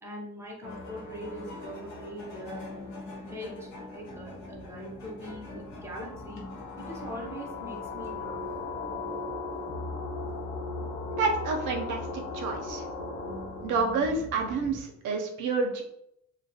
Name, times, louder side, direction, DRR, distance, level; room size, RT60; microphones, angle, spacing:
voice 1, 0.0-2.7 3.3-6.4 6.8-8.4, equal, 10° right, -1 dB, 0.7 m, -42 dB
sound 1, 0.6-14.8, left 2 dB, 80° left, 0.7 m, -42 dB
sound 2, 5.6-13.9, left 3 dB, 40° left, 0.9 m, -38 dB
voice 2, 11.2-12.8 13.6-15.8, right 4 dB, 85° right, 2 dB, 0.5 m, -29 dB
2.3 x 2.1 x 2.6 m, 0.77 s
cardioid pair, 90°, 30 cm